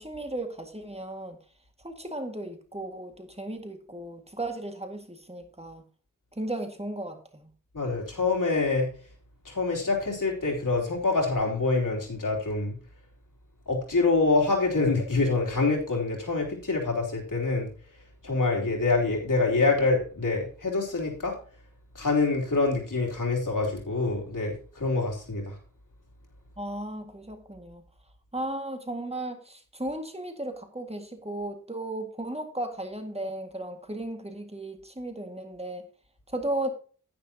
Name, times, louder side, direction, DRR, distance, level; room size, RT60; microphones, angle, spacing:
voice 1, 0.0-1.4 1.8-5.8 6.4-7.5 26.6-27.8 28.3-35.9 36.3-36.7, right 1 dB, 20° right, 5 dB, 1.9 m, -35 dB
voice 2, 7.7-8.9 9.4-12.7 13.7-17.7 18.2-21.3 21.9-25.5, left 3 dB, 85° left, -1 dB, 3.2 m, -26 dB
10.5 x 10.0 x 2.9 m, 0.40 s
wide cardioid pair, 70°, 31 cm